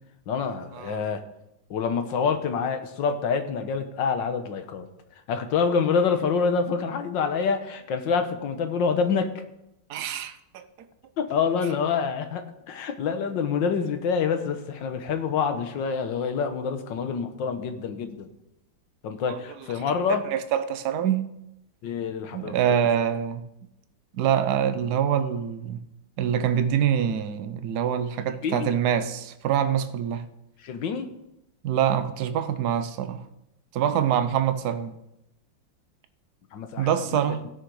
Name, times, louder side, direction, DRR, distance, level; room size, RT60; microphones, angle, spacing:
voice 1, 0.3-1.2 1.7-4.9 5.3-9.3 11.2-18.3 19.0-20.3 21.8-22.6 28.4-28.7 30.6-31.1 36.5-37.2, left 5 dB, 70° left, 1.7 m, -26 dB
voice 2, 9.9-10.9 19.3-19.4 20.2-21.3 22.3-23.4 24.1-25.8 26.2-30.2 31.6-33.2 33.7-35.0 36.8-37.5, right 9 dB, 60° right, 1.2 m, -25 dB
16.5 x 6.5 x 4.8 m
omnidirectional pair, 2.1 m